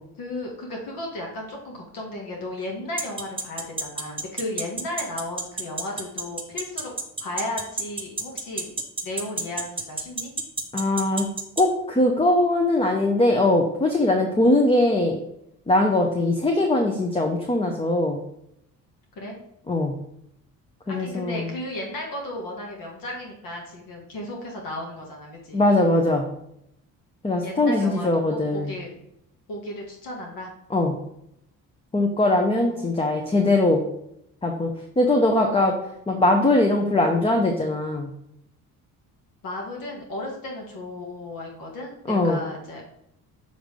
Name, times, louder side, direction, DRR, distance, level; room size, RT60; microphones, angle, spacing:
voice 1, 0.2-6.9 7.2-8.7 9.0-10.3 19.1-19.4 20.9-25.6 27.3-28.9 29.5-30.5 32.7-33.3 39.4-43.0, left 1 dB, 65° left, 0 dB, 1.6 m, -34 dB
sound 1, 3.0-11.6, right 3 dB, 15° right, 0.8 m, -28 dB
voice 2, 10.7-11.3 11.6-15.2 15.7-18.2 19.7-20.0 20.9-21.5 25.5-26.3 27.2-28.8 30.7-31.0 31.9-33.8 34.4-34.7 35.0-35.7 36.1-38.1 42.1-42.4, left 2 dB, 15° left, 2 dB, 0.7 m, -21 dB
6.5 x 3.2 x 5.2 m, 0.77 s
cardioid pair, 105°, 36 cm